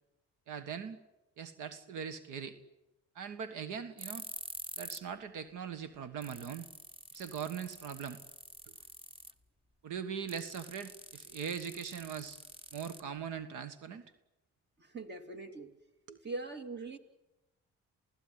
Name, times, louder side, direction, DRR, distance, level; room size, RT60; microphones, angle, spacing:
voice 1, 0.5-1.0 1.4-2.6 3.1-4.2 4.8-6.7 7.1-8.2 8.6-8.7 9.8-12.4 12.7-14.0 16.1-16.2, right 7 dB, 85° right, 11 dB, 1.6 m, -41 dB
sound 1, 4.0-5.1 5.4-5.5 5.9-6.0 6.2-9.4 10.3-13.4, right 1 dB, 15° right, 1.7 m, -47 dB
voice 2, 14.8-15.7 16.2-17.0, right 3 dB, 35° right, 7 dB, 2.9 m, -42 dB
28.5 x 17.0 x 9.7 m, 0.96 s
cardioid pair, 90°, 30 cm